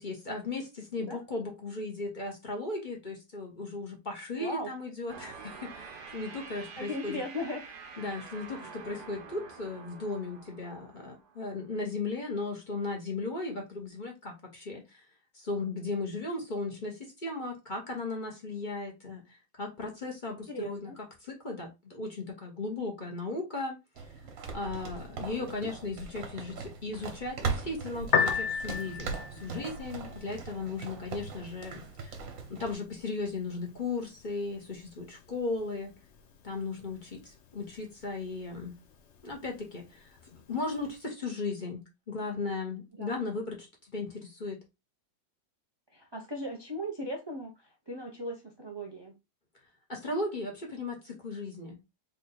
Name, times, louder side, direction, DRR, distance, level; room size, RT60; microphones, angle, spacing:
voice 1, 0.0-7.2 8.0-15.0 15.3-20.9 21.2-24.1 24.5-32.2 32.5-35.9 36.4-38.8 39.2-40.1 40.5-44.6 49.9-51.8, left 3 dB, 30° left, 1.2 m, -36 dB
voice 2, 4.4-4.7 6.8-7.6 20.5-21.0 25.2-25.7 43.0-43.2 45.9-49.1, equal, 40° right, 0.3 m, -38 dB
sound 1, 5.1-11.7, right 5 dB, 65° right, 1.4 m, -47 dB
sound 2, 24.0-32.7, right 5 dB, 85° right, 1.8 m, -39 dB
Piano, 28.0-41.0, left 7 dB, 60° left, 0.7 m, -38 dB
4.0 x 3.3 x 4.0 m
omnidirectional pair, 2.0 m